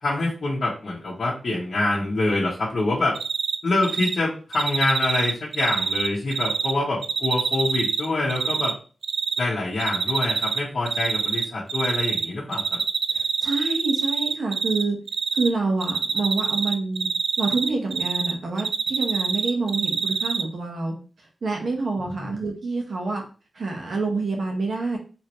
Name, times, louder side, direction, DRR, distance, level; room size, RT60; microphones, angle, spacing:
voice 1, 0.0-3.1 3.6-8.7 9.4-12.8 22.0-22.3, left 2 dB, 50° left, -8 dB, 1.4 m, -25 dB
Cricket, 3.1-3.6 3.8-4.1 4.5-6.7 7.0-8.7 9.0-9.4 9.8-10.6 10.9-12.3 12.5-14.8 15.1-15.5 15.8-18.3 18.6-20.4, right 5 dB, 90° right, 0.4 m, -25 dB
voice 2, 13.1-15.0 15.3-17.1 17.4-20.9 21.4-23.2 23.5-25.0, right 3 dB, 55° right, 1 dB, 1.3 m, -27 dB
4.6 x 3.2 x 3.1 m, 0.36 s
wide cardioid pair, 175°, 0 cm